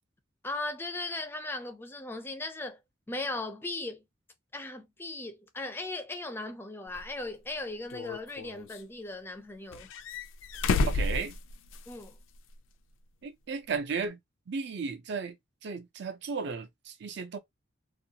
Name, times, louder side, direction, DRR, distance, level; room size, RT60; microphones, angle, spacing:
voice 1, 0.4-2.8 3.1-4.0 4.5-9.9 11.9-12.2, left 2 dB, 10° left, 0.4 m, -37 dB
sound 1, 6.9-7.0 7.9-8.8 9.7-12.0 12.3-12.4 14.0-14.1, left 3 dB, 75° left, 0.4 m, -31 dB
voice 2, 10.9-11.4 13.2-14.2 14.5-15.4 15.6-17.4, right 5 dB, 60° right, 0.5 m, -35 dB
2.3 x 2.3 x 2.7 m
head